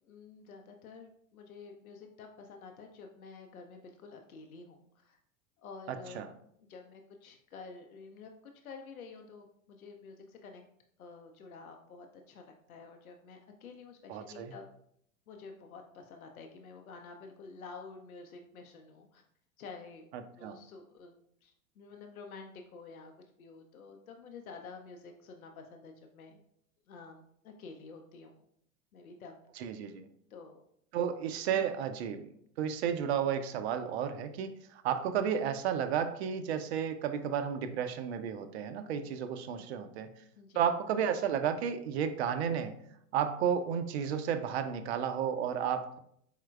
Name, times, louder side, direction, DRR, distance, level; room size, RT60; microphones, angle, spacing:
voice 1, 0.0-5.2 5.6-8.3 8.6-10.6 11.0-14.6 15.3-19.2 19.6-20.1 20.3-21.1 21.4-26.4 26.9-28.4 28.9-29.4 30.3-30.6 31.5-31.7 39.5-39.7 40.4-40.7, left 4 dB, 75° left, 3 dB, 0.6 m, -50 dB
voice 2, 14.1-14.5 20.4-20.6 29.6-30.0 30.9-32.3 32.6-34.5 34.8-40.1 40.6-42.7 43.1-46.0, right 8 dB, 50° right, 10 dB, 0.5 m, -32 dB
4.5 x 3.6 x 2.2 m, 0.69 s
figure-of-eight pair, 90°, 43 cm